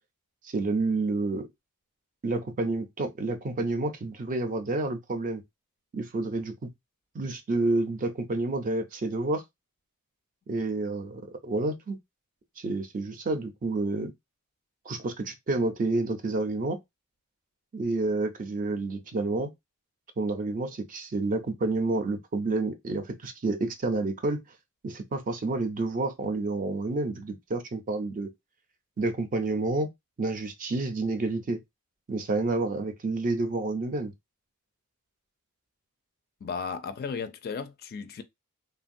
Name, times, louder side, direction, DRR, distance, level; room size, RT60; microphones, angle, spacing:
voice 1, 0.4-1.5 2.2-5.4 5.9-6.7 7.1-9.4 10.5-12.0 12.6-14.1 14.9-16.8 17.7-19.5 20.2-24.4 24.8-28.3 29.0-29.9 30.2-31.6 32.1-34.1, right 2 dB, 35° right, 0.5 m, -29 dB
voice 2, 36.4-38.2, left 5 dB, 45° left, 0.4 m, -35 dB
3.1 x 2.2 x 2.5 m
head